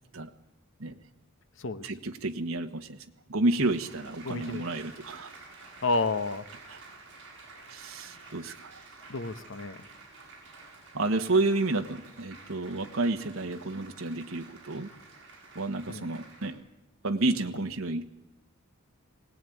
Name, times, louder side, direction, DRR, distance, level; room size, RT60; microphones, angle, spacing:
voice 1, 1.8-3.0 3.3-5.3 6.7-6.8 7.7-8.9 10.9-14.9 15.5-16.6 17.0-18.1, right 2 dB, 75° right, 5 dB, 1.5 m, -30 dB
Applause, 3.6-16.5, right 3 dB, 55° right, 7.7 m, -51 dB
voice 2, 4.2-4.6 5.8-6.5 9.1-9.8 15.9-16.1, left 3 dB, 60° left, 13 dB, 1.1 m, -30 dB
23.5 x 18.5 x 9.3 m, 0.91 s
head